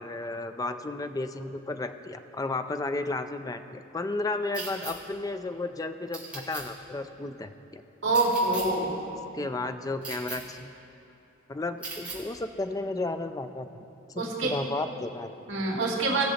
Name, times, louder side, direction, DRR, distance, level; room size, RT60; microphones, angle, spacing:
voice 1, 0.0-7.8 9.3-10.7 11.5-13.7 14.1-15.3, left 2 dB, 20° left, 9 dB, 0.4 m, -33 dB
sound 1, 4.5-4.9 6.1-6.6 8.1-8.6 10.0-10.4 11.8-12.2, right 3 dB, 5° right, 2.6 m, -37 dB
voice 2, 8.0-9.0 14.2-14.6 15.5-16.2, right 2 dB, 75° right, -2 dB, 2.4 m, -26 dB
19.0 x 6.8 x 4.2 m, 2.9 s
head